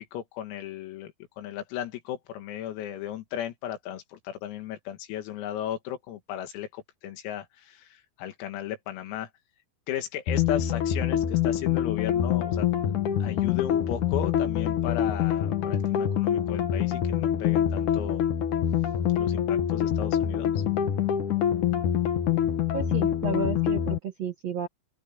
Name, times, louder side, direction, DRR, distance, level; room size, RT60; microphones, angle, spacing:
voice 1, 0.0-9.3 9.9-12.7 13.2-18.2 19.2-20.6, left 11 dB, 85° left, 4.7 m, -35 dB
sound 1, 10.3-24.0, left 9 dB, 70° left, 1.9 m, -25 dB
voice 2, 22.7-24.7, right 5 dB, 85° right, 1.4 m, -32 dB
open air
omnidirectional pair, 6.0 m